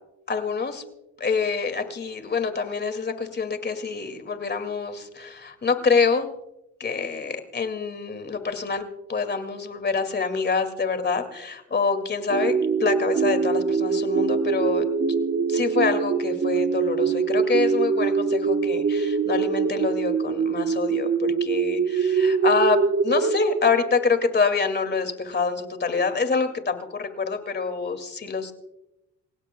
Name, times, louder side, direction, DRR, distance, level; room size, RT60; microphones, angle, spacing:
voice 1, 0.3-0.8 1.2-6.3 6.8-14.9 15.5-28.5, left 4 dB, 35° left, 8 dB, 2.3 m, -26 dB
sound 1, 12.3-24.7, right 5 dB, 45° right, 1.1 m, -24 dB
27.5 x 16.5 x 2.3 m, 0.89 s
cardioid pair, 90°, 30 cm